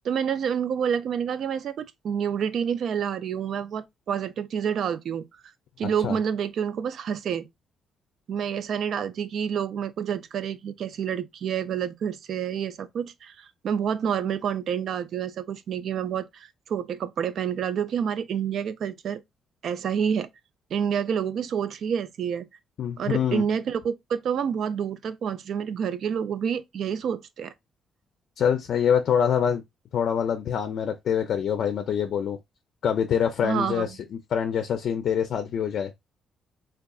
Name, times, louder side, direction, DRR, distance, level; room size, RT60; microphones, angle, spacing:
voice 1, 0.0-5.3 5.8-7.5 8.3-19.2 19.6-20.3 20.7-22.5 23.0-27.5 33.4-33.9, right 8 dB, 65° right, 0.4 m, -28 dB
voice 2, 5.8-6.2 22.8-23.5 28.4-29.6 29.9-32.4 32.8-35.9, left 8 dB, 65° left, 0.4 m, -25 dB
3.6 x 2.3 x 2.3 m
cardioid pair, 90°, 0 cm